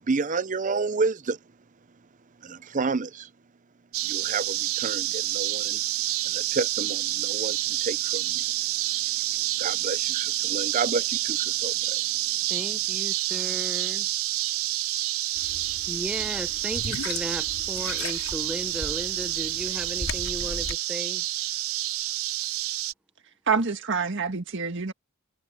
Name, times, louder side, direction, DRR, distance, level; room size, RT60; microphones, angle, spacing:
voice 1, 0.1-1.4 2.4-3.3 4.0-5.8 6.2-8.4 9.6-12.0, right 4 dB, 35° right, 0.6 m, -30 dB
sound 1, 3.9-22.9, right 16 dB, 75° right, 0.5 m, -28 dB
voice 2, 12.5-14.1 15.9-21.2, equal, 5° right, 0.9 m, -36 dB
sound 2, 15.4-20.8, left 3 dB, 80° left, 4.2 m, -38 dB
voice 3, 23.5-24.9, right 5 dB, 60° right, 1.8 m, -26 dB
head